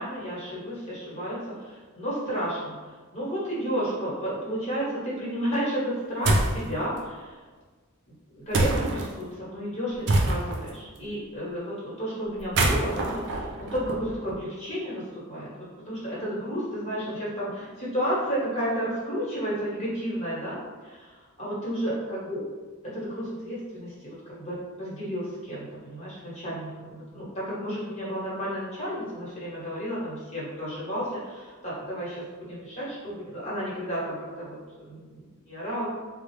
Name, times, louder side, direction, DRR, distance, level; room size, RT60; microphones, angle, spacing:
voice 1, 0.0-2.8 3.1-7.4 8.3-22.4 22.9-35.9, equal, 30° left, -8 dB, 1.2 m, -32 dB
sound 1, 6.2-6.6 8.5-9.1 10.1-10.7 12.4-14.3, right 2 dB, 55° right, 0.4 m, -25 dB
3.7 x 2.0 x 3.1 m, 1.4 s
head